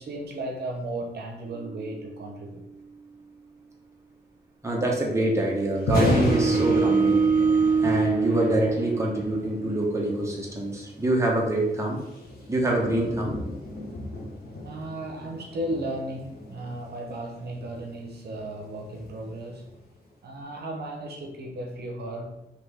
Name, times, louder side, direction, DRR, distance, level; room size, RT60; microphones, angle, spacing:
voice 1, 0.0-2.6 14.6-19.7 20.2-22.3, right 1 dB, 75° right, 1 dB, 0.8 m, -35 dB
sound 1, 1.5-1.9 6.0-9.5, right 5 dB, 50° right, 0.4 m, -24 dB
voice 2, 4.6-7.2 7.8-12.0 12.5-13.4, right 1 dB, 15° right, -2 dB, 1.1 m, -25 dB
Thunder, 5.7-19.9, left 1 dB, 65° left, 1.3 m, -34 dB
4.2 x 3.1 x 3.5 m, 0.89 s
cardioid pair, 95°, 17 cm